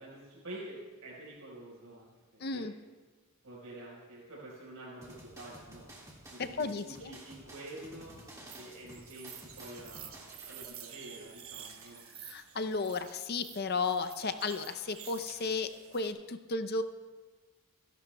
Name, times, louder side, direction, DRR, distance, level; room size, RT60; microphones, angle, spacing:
voice 1, 0.0-2.6 3.4-5.9 6.3-8.1 8.5-12.0, right 1 dB, 85° right, -5 dB, 4.5 m, -48 dB
voice 2, 2.4-2.7 6.4-7.1 12.2-16.8, left 4 dB, 45° left, 10 dB, 0.6 m, -34 dB
sound 1, 5.0-10.6, right 1 dB, 15° right, 1.8 m, -52 dB
sound 2, 8.5-16.1, right 9 dB, 65° right, 1.2 m, -50 dB
28.0 x 11.5 x 2.3 m, 1.3 s
head